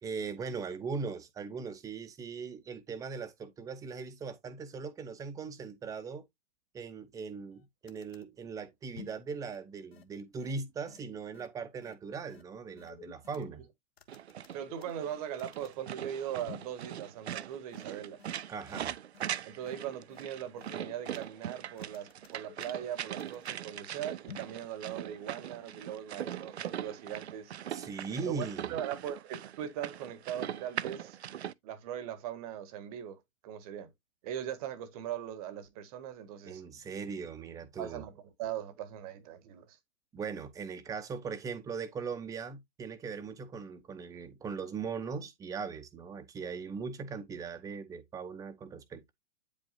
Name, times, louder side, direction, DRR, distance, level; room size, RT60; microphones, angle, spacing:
voice 1, 0.0-6.2 6.7-13.6 18.5-18.9 27.7-28.7 36.4-38.0 40.1-49.1, right 5 dB, 10° right, 0.7 m, -39 dB
sound 1, 7.5-7.6 7.9-8.2 8.9-9.2 9.5-9.6 9.9-10.0 10.4-10.5 10.9-11.0 11.3-11.5 11.8-11.9 12.3-12.4 12.8-13.4 14.0-15.1 15.4-15.8 16.5-16.8 17.3-17.4 17.7-17.8 18.2-18.3 18.7-18.8 19.1-19.3 19.6-19.7 20.1-20.2 20.6-21.2 21.8-22.9 23.2-23.6 24.3-24.6 24.8-24.9, left 8 dB, 60° left, 1.1 m, -51 dB
sound 2, 14.1-31.5, right 10 dB, 65° right, 0.5 m, -41 dB
voice 2, 14.5-18.2 19.4-27.5 28.2-31.2 31.6-33.9 34.2-36.6 37.8-38.1 38.4-39.8, right 10 dB, 30° right, 1.0 m, -40 dB
8.8 x 5.1 x 2.7 m
figure-of-eight pair, 115°, 35 cm